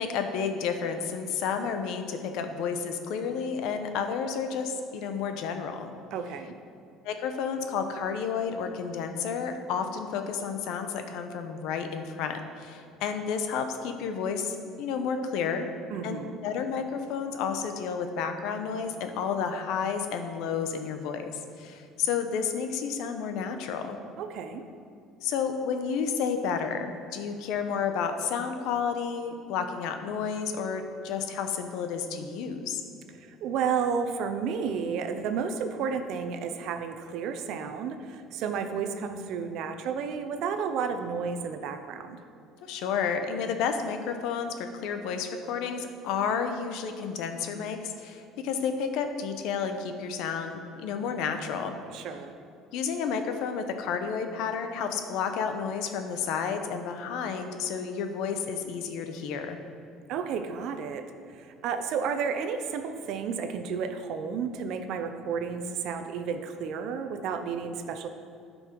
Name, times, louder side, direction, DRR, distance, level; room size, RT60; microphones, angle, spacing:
voice 1, 0.0-5.9 7.0-15.7 16.0-24.0 25.2-32.8 42.6-51.7 52.7-59.6, left 6 dB, 70° left, 7 dB, 0.8 m, -31 dB
voice 2, 6.1-6.5 15.9-16.4 24.2-24.7 33.2-42.2 51.9-52.3 60.1-68.1, right 6 dB, 60° right, 8 dB, 0.7 m, -32 dB
12.0 x 5.4 x 4.6 m, 2.6 s
cardioid pair, 150°, 0 cm